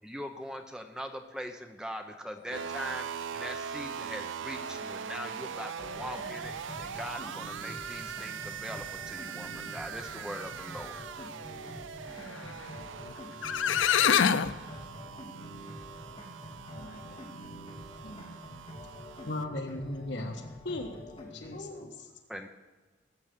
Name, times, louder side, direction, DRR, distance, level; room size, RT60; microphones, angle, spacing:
voice 1, 0.0-10.9 22.3-22.5, equal, 5° right, 5 dB, 0.7 m, -41 dB
sound 1, 2.5-19.4, right 7 dB, 85° right, 0.5 m, -41 dB
sound 2, 5.8-21.6, left 1 dB, 30° left, 2.5 m, -46 dB
sound 3, 13.1-13.2 13.4-14.5, left 8 dB, 85° left, 0.6 m, -24 dB
voice 2, 13.9-14.3 14.6-15.0 16.7-17.5 18.0-18.3 21.5-22.1, left 1 dB, 55° left, 0 dB, 2.4 m, -48 dB
voice 3, 19.2-21.0 21.3-21.8, left 2 dB, 70° left, 4 dB, 1.4 m, -37 dB
18.0 x 7.7 x 6.7 m, 1.3 s
head